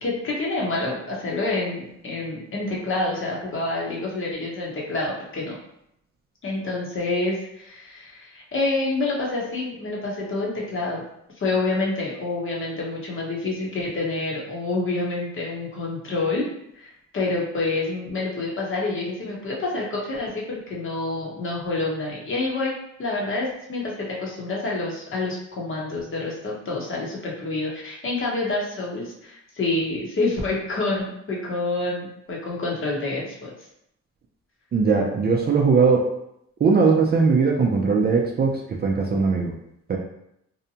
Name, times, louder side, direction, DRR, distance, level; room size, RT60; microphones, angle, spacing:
voice 1, 0.0-5.6 6.4-11.0 11.4-16.4 16.7-22.7 23.0-33.5, left 2 dB, 45° left, -3 dB, 0.9 m, -27 dB
voice 2, 34.7-36.1 36.6-39.5 39.9-40.0, right 4 dB, 35° right, 0 dB, 0.4 m, -20 dB
2.7 x 2.1 x 2.7 m, 0.78 s
cardioid pair, 90°, 30 cm